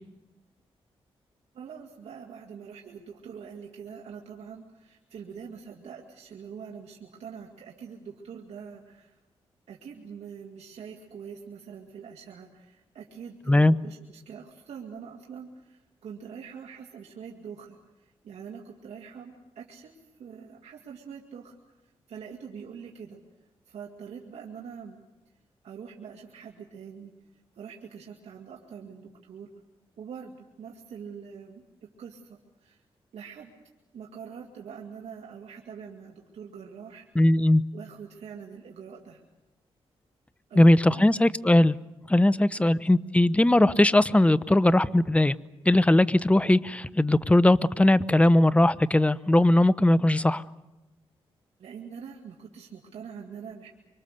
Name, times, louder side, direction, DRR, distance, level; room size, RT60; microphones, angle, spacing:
voice 1, 1.5-9.2 9.7-25.0 25.6-29.5 30.0-31.6 32.0-32.8 33.1-33.5 33.9-37.1 37.7-39.2 40.5-41.2 42.6-42.9 51.6-53.7, right 7 dB, 85° right, 0 dB, 2.3 m, -44 dB
voice 2, 37.2-37.6 40.5-41.8 42.1-45.4 45.6-50.4, left 1 dB, 10° left, 16 dB, 0.8 m, -20 dB
25.5 x 25.0 x 6.7 m, 1.0 s
cardioid pair, 70°, 11 cm